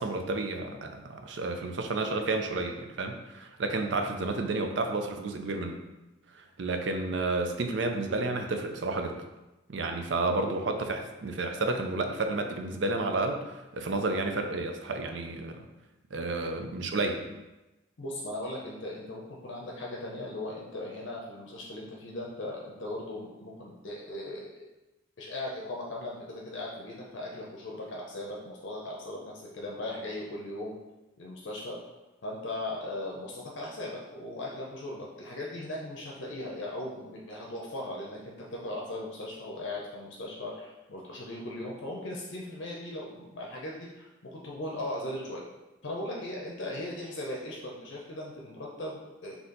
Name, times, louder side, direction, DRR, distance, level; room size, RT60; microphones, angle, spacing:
voice 1, 0.0-5.8 6.3-9.2 9.7-15.6 16.1-17.2, right 2 dB, 65° right, 5 dB, 0.5 m, -31 dB
voice 2, 18.0-24.7 25.2-30.7 31.2-31.9 32.2-45.4 45.8-49.3, left 1 dB, 65° left, -3 dB, 0.6 m, -38 dB
4.2 x 2.8 x 3.9 m, 1.0 s
head